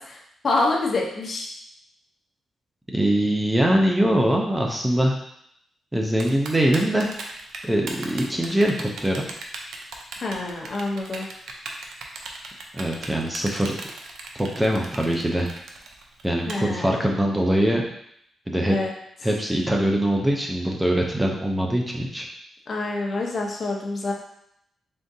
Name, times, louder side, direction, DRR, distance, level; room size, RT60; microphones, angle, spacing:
voice 1, 0.4-1.5 10.2-11.3 16.5-17.0 18.6-18.9 22.7-24.1, left 2 dB, 45° left, 0 dB, 0.7 m, -26 dB
voice 2, 2.9-5.1 5.9-7.1 7.6-9.2 12.7-13.7 14.3-15.5 16.2-17.9 18.5-18.8 19.2-22.3, right 1 dB, 10° right, 0 dB, 0.5 m, -22 dB
Typing, 6.2-16.5, right 4 dB, 90° right, 0.5 m, -37 dB
3.7 x 3.6 x 2.7 m, 0.73 s
wide cardioid pair, 135°, 0 cm